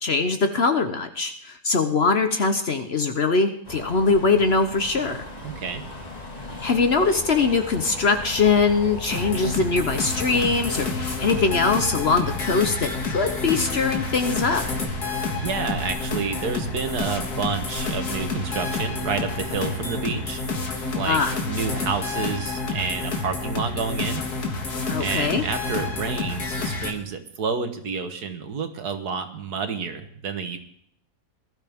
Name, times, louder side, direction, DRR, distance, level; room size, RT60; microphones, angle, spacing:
voice 1, 0.0-5.2 6.6-14.6 21.1-21.3 24.9-25.4, left 4 dB, 45° left, 7 dB, 1.0 m, -22 dB
sound 1, 3.6-20.5, left 1 dB, 25° left, 1.9 m, -38 dB
voice 2, 5.4-5.8 15.4-20.4 20.9-21.2 21.5-24.2 25.0-30.6, right 5 dB, 75° right, 8 dB, 1.8 m, -29 dB
sound 2, 9.1-26.9, left 3 dB, 75° left, 2.3 m, -29 dB
20.5 x 12.5 x 3.5 m, 0.68 s
omnidirectional pair, 1.7 m